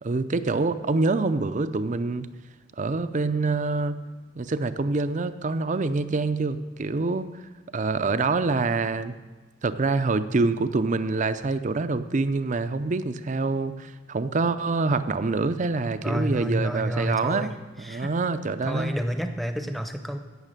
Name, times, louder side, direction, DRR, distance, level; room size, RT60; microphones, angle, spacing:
voice 1, 0.0-2.3 2.8-4.0 4.4-7.3 7.7-9.1 9.6-18.9, right 3 dB, 40° right, 12 dB, 0.5 m, -26 dB
voice 2, 16.0-18.1 18.6-20.2, equal, ahead, 6 dB, 0.8 m, -29 dB
16.5 x 6.5 x 6.6 m, 1.2 s
head